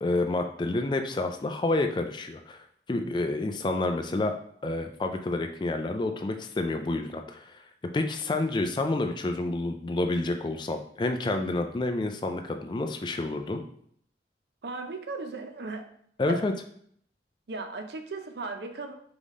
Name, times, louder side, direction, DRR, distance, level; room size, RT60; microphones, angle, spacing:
voice 1, 0.0-4.3 4.6-7.6 7.9-13.6 16.2-16.5, left 2 dB, 25° left, 5 dB, 0.3 m, -29 dB
voice 2, 14.6-15.9 16.3-16.4 17.5-18.9, right 3 dB, 70° right, 6 dB, 0.5 m, -36 dB
3.9 x 3.6 x 3.5 m, 0.64 s
head